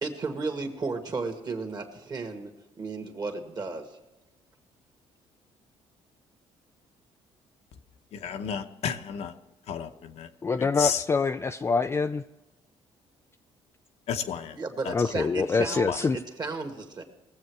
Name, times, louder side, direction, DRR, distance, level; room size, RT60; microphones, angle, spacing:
voice 1, 0.0-2.5 2.8-4.0 14.6-17.0, right 3 dB, 35° right, 5 dB, 1.9 m, -34 dB
voice 2, 8.1-9.3 9.7-10.3 10.6-11.0 14.1-14.6 14.8-14.9 15.8-16.0, left 7 dB, 65° left, 6 dB, 0.9 m, -32 dB
voice 3, 10.4-12.2 14.9-16.2, left 4 dB, 20° left, 8 dB, 0.4 m, -25 dB
19.5 x 7.5 x 4.7 m, 1.0 s
cardioid pair, 105°, 11 cm